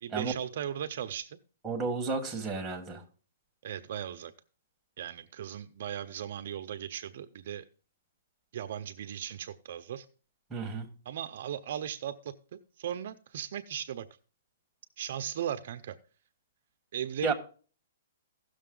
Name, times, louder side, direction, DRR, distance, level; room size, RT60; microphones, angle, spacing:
voice 1, 0.0-1.4 3.6-4.3 5.0-7.6 8.5-10.1 11.1-14.1 15.0-16.0 16.9-17.3, right 9 dB, 45° right, 0.5 m, -37 dB
voice 2, 1.6-3.0 10.5-10.9 17.2-17.3, right 4 dB, 5° right, 1.4 m, -32 dB
16.0 x 6.4 x 3.8 m
hypercardioid pair, 175°, 0 cm